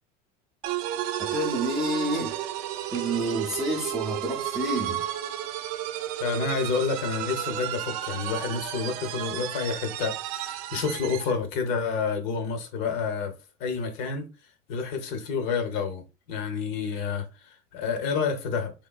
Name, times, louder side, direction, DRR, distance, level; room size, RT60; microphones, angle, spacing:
sound 1, 0.6-11.4, right 13 dB, 70° right, 0.5 m, -33 dB
voice 1, 1.2-2.4 2.9-5.0, right 1 dB, ahead, 0.6 m, -29 dB
voice 2, 6.2-13.3 13.6-14.3 14.7-16.0 16.3-18.7, left 5 dB, 55° left, 0.9 m, -29 dB
3.7 x 3.2 x 2.3 m
cardioid pair, 170°, 20 cm